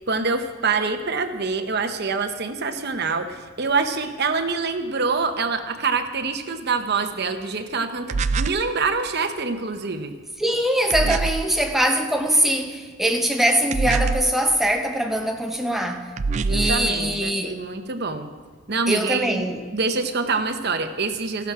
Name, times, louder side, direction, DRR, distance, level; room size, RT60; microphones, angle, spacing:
voice 1, 0.1-10.2 16.4-18.3 18.7-19.4 19.7-21.5, right 4 dB, 50° right, 7 dB, 0.9 m, -25 dB
sound 1, 8.1-8.7 10.9-11.5 13.7-14.4 16.2-16.9, right 4 dB, 30° right, 0.3 m, -24 dB
voice 2, 10.4-16.1 16.5-17.6 18.9-19.6, right 1 dB, ahead, 3 dB, 0.8 m, -22 dB
14.0 x 12.0 x 4.8 m, 1.5 s
head